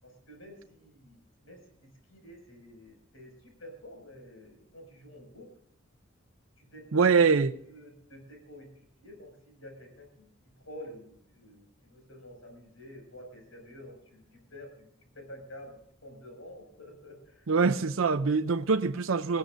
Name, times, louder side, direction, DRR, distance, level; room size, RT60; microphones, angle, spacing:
voice 1, 0.0-5.5 6.6-7.3 7.6-10.3 10.6-14.9 15.1-17.8 18.3-18.4, left 1 dB, 80° left, 6.5 m, -49 dB
voice 2, 6.9-7.6 17.5-19.4, right 5 dB, 80° right, 0.6 m, -24 dB
20.0 x 15.5 x 2.6 m
head